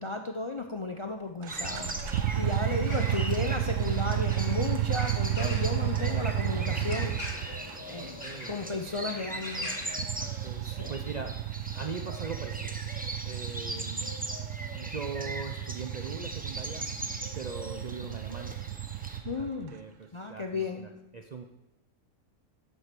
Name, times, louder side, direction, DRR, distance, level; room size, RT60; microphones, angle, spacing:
voice 1, 0.0-7.2 7.9-8.2 8.5-9.7 10.6-10.9 19.2-19.7 20.1-20.9, left 3 dB, 50° left, 5 dB, 0.3 m, -34 dB
sound 1, 1.4-7.8 9.6-19.7, right 12 dB, 75° right, 0.9 m, -32 dB
sound 2, 1.5-9.9, left 1 dB, 30° left, 1.6 m, -43 dB
sound 3, 1.5-19.2, right 1 dB, 10° right, 0.6 m, -40 dB
voice 2, 2.9-3.3 8.0-8.6 10.2-11.3 11.7-12.8 13.2-14.2 14.8-16.9 17.3-18.6 19.4-21.5, right 4 dB, 55° right, 4 dB, 0.5 m, -41 dB
8.0 x 7.9 x 6.0 m, 0.95 s
omnidirectional pair, 1.4 m